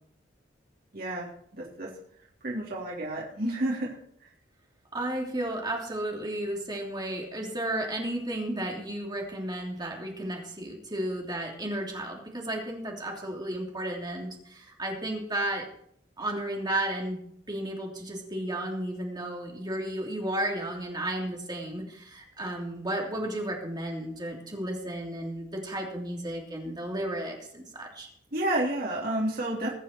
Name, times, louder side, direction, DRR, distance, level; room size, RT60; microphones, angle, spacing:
voice 1, 0.9-1.9 2.4-4.0 28.3-29.7, right 1 dB, 55° right, -3 dB, 3.5 m, -30 dB
voice 2, 4.9-15.7 16.2-28.1, right 1 dB, 25° right, 0 dB, 3.1 m, -33 dB
21.5 x 7.4 x 4.6 m, 0.66 s
head